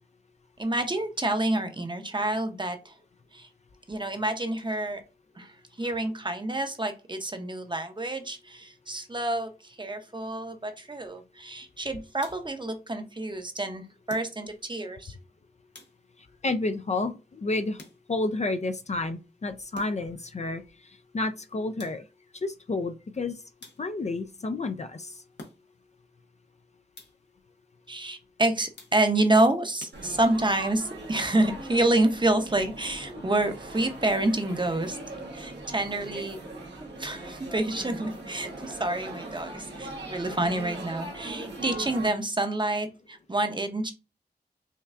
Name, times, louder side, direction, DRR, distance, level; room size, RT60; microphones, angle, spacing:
voice 1, 0.6-2.9 3.3-3.5 3.9-5.0 5.4-15.1 27.9-35.0 35.3-36.4 37.0-43.9, right 2 dB, 25° right, 0.7 m, -28 dB
sound 1, 12.1-12.7 14.1-14.7 15.7-16.3 17.8-18.4 19.7-20.2 21.8-22.3 23.6-24.2 25.4-25.9 26.9-27.4 28.8-29.3 29.8-30.5, left 2 dB, 85° left, 0.9 m, -50 dB
voice 2, 16.4-17.8 18.1-20.6 21.1-22.0 22.3-23.4 23.8-25.1, left 2 dB, 40° left, 0.4 m, -30 dB
Laughter / Chatter / Crowd, 29.9-42.1, right 2 dB, 80° right, 1.1 m, -40 dB
5.4 x 2.3 x 2.4 m
cardioid pair, 45°, 18 cm